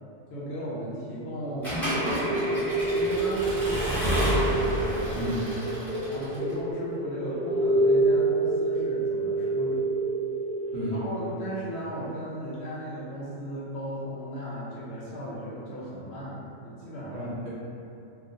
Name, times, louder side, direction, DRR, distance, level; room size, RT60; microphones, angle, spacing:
voice 1, 0.3-5.2 6.1-9.9 10.9-17.3, equal, 65° left, -7 dB, 0.7 m, -36 dB
Accelerating revving vroom / Mechanisms, 1.6-6.5, equal, ahead, 0.7 m, -30 dB
sound 1, 1.8-11.7, right 2 dB, 45° right, 0.8 m, -27 dB
voice 2, 5.2-5.7 10.7-11.2 17.1-17.5, equal, 70° right, -7 dB, 0.9 m, -32 dB
2.3 x 2.2 x 2.6 m, 2.6 s
omnidirectional pair, 1.3 m